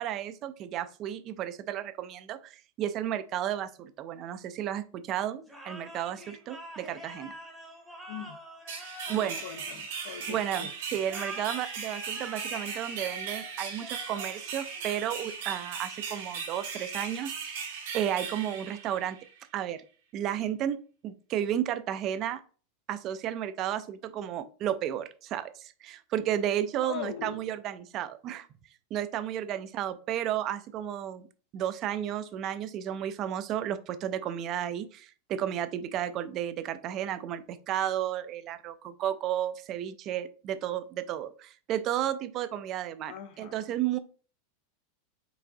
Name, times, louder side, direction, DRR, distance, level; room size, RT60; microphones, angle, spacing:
voice 1, 0.0-7.3 9.1-9.4 10.3-19.2 19.5-19.8 20.1-20.8 21.0-22.4 22.9-28.5 28.9-31.3 31.5-44.0, right 11 dB, 30° right, 13 dB, 0.3 m, -33 dB
sound 1, 5.5-10.3 11.0-15.4, right 1 dB, 5° right, 0.9 m, -46 dB
voice 2, 8.1-8.4 9.1-10.7 26.8-27.5 43.1-43.8, left 9 dB, 70° left, 6 dB, 0.5 m, -41 dB
sound 2, 8.7-19.4, right 5 dB, 70° right, 1.8 m, -38 dB
4.7 x 3.8 x 2.6 m, 0.38 s
supercardioid pair, 165°, 0 cm